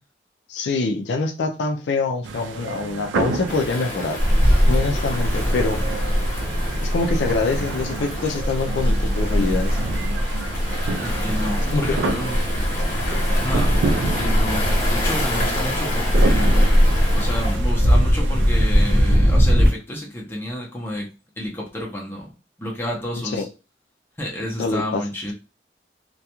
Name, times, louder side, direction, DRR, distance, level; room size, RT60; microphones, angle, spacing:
voice 1, 0.5-4.2 4.7-5.8 6.8-9.8 11.7-12.2 12.6-12.7 23.2-23.5 24.6-25.0, left 3 dB, 75° left, 0.4 m, -25 dB
sound 1, 2.2-19.2, right 3 dB, 85° right, 0.3 m, -31 dB
Waves surf, 3.5-17.6, left 1 dB, 45° left, 0.9 m, -31 dB
Ocean, 4.2-19.7, equal, 60° right, 0.7 m, -20 dB
voice 2, 11.0-12.4 13.4-21.1 21.4-22.3 22.6-23.5 24.2-25.3, equal, 10° left, 0.6 m, -30 dB
2.3 x 2.2 x 2.9 m
head